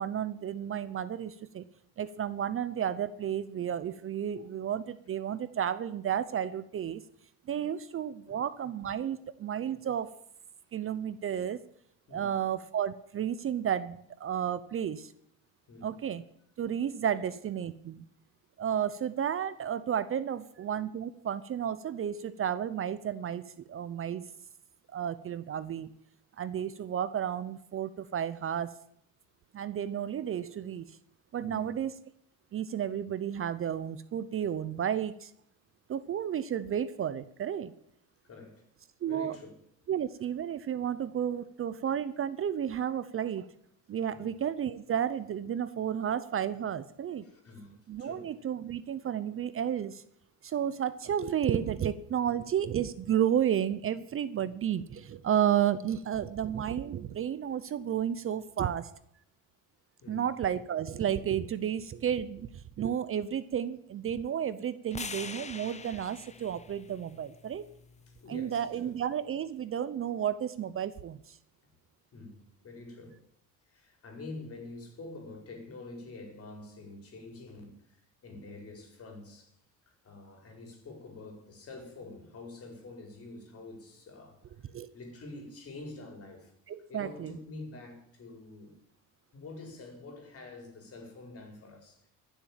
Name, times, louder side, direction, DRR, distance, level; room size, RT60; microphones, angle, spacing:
voice 1, 0.0-1.6 2.0-7.0 7.5-10.1 10.7-11.6 12.1-15.1 15.8-16.2 16.6-18.1 18.6-24.2 24.9-25.9 26.4-28.8 29.5-31.0 31.3-31.9 32.5-35.3 35.9-37.7 39.0-39.4 39.9-43.5 43.9-47.2 47.9-50.0 50.4-58.9 60.1-67.7 68.3-71.4 84.7-84.9 86.7-87.4, right 9 dB, 40° right, 0.7 m, -32 dB
voice 2, 31.4-31.7 38.3-38.6 39.1-39.5 44.1-44.3 47.2-48.3 60.0-60.3 68.1-69.0 72.1-73.2 73.7-79.6 80.0-84.5 84.9-86.5 86.9-88.8 89.3-92.1, left 2 dB, 40° left, 5.1 m, -47 dB
sound 1, 64.9-69.1, left 5 dB, 20° left, 0.7 m, -45 dB
15.0 x 7.3 x 9.0 m
cardioid pair, 125°, 35 cm